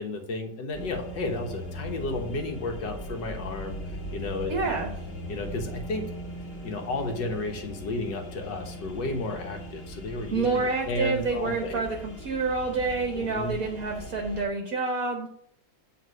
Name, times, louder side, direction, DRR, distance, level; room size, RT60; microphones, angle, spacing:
voice 1, 0.0-3.8 4.1-4.5 5.3-6.0 6.6-11.8 13.2-13.5, left 2 dB, 85° left, 3 dB, 1.9 m, -32 dB
sound 1, 0.7-14.4, equal, 35° left, 1.7 m, -40 dB
voice 2, 4.5-4.9 10.3-15.3, right 3 dB, 55° right, 2 dB, 1.4 m, -28 dB
8.6 x 4.0 x 6.2 m, 0.71 s
omnidirectional pair, 1.9 m